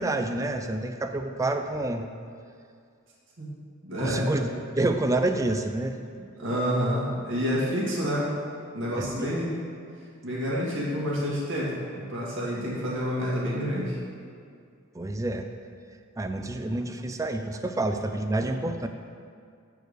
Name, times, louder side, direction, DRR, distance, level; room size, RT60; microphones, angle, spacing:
voice 1, 0.0-2.1 4.0-6.0 9.0-9.3 14.9-15.5 16.2-18.9, right 2 dB, 15° right, 7 dB, 0.4 m, -28 dB
voice 2, 3.8-4.3 6.4-8.3 8.7-9.6 10.2-14.0, equal, 60° right, -6 dB, 1.9 m, -28 dB
8.2 x 4.6 x 6.5 m, 2.3 s
head